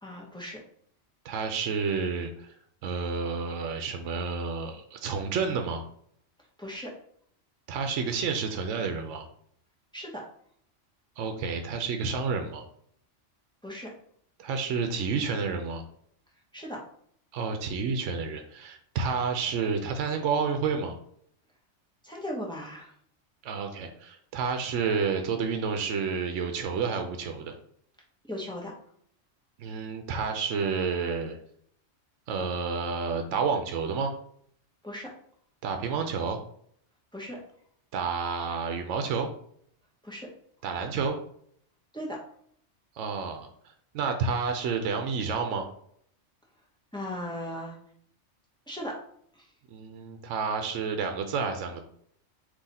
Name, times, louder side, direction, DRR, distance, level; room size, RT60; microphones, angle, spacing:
voice 1, 0.0-0.6 6.6-6.9 9.9-10.2 13.6-13.9 16.5-16.8 22.0-22.9 28.3-28.7 34.8-35.1 37.1-37.4 40.0-40.3 41.9-42.2 46.9-47.8 48.7-48.9 49.4-49.5, equal, 5° left, -2 dB, 0.8 m, -37 dB
voice 2, 1.2-2.5 2.8-5.8 7.7-9.3 11.2-12.6 14.4-15.8 17.3-20.9 23.4-27.5 29.6-31.4 32.3-34.1 35.6-36.4 37.9-39.3 40.6-41.2 43.0-43.5 43.9-45.7 49.7-51.8, right 5 dB, 75° right, 5 dB, 0.9 m, -30 dB
3.8 x 2.8 x 4.1 m, 0.65 s
omnidirectional pair, 1.3 m